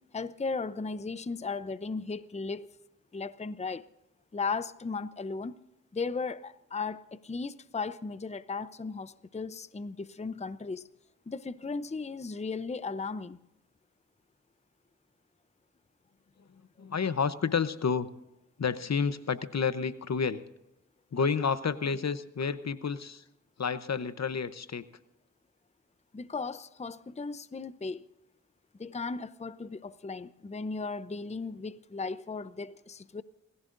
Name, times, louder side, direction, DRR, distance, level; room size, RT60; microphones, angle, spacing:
voice 1, 0.1-2.7 3.1-3.8 4.3-5.6 5.9-10.8 11.3-13.4 26.1-28.0 28.8-33.2, left 4 dB, 20° left, 0.6 m, -36 dB
voice 2, 16.8-18.1 18.6-20.4 21.1-23.2 23.6-24.8, left 6 dB, 55° left, 0.9 m, -30 dB
30.0 x 15.0 x 2.6 m
cardioid pair, 40°, 32 cm